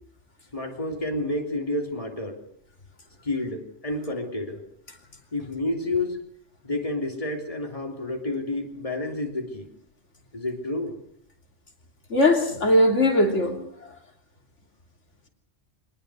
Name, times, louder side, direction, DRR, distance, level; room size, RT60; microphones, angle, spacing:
voice 1, 0.5-2.4 3.2-4.6 5.3-6.2 6.6-9.7 10.3-10.9, left 2 dB, 30° left, 2 dB, 3.5 m, -29 dB
voice 2, 12.1-13.7, left 1 dB, 85° left, 2 dB, 3.5 m, -20 dB
24.0 x 20.0 x 6.5 m, 0.66 s
omnidirectional pair, 1.2 m